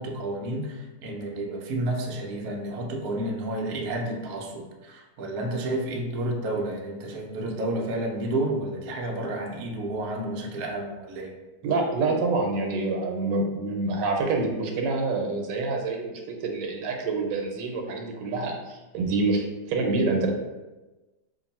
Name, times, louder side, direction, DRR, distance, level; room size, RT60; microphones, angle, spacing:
voice 1, 0.0-11.3, right 1 dB, 65° right, 1 dB, 1.0 m, -31 dB
voice 2, 11.6-20.3, right 3 dB, 85° right, 2 dB, 1.3 m, -27 dB
2.9 x 2.6 x 4.1 m, 1.1 s
omnidirectional pair, 1.9 m